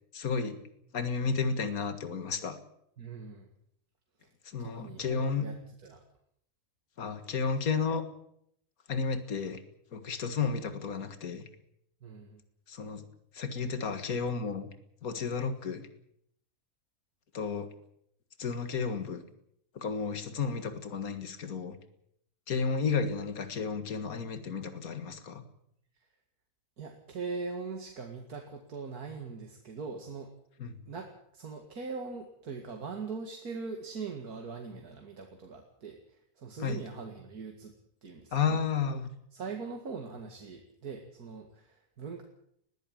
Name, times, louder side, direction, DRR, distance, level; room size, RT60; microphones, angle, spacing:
voice 1, 0.1-0.6 0.9-2.6 4.5-5.5 7.0-8.0 8.9-9.6 9.9-11.5 12.7-13.1 13.3-14.7 15.0-15.9 17.3-17.7 18.4-19.2 19.7-21.8 22.5-25.4 30.6-30.8 36.6-36.9 38.3-39.1, left 5 dB, 70° left, 9 dB, 2.2 m, -32 dB
voice 2, 3.0-3.5 4.2-4.3 4.6-5.6 5.8-6.0 12.0-12.4 26.8-30.3 30.9-37.7 38.0-38.6 39.3-42.2, right 4 dB, 85° right, 3 dB, 2.6 m, -41 dB
21.0 x 14.5 x 9.0 m, 0.72 s
omnidirectional pair, 1.6 m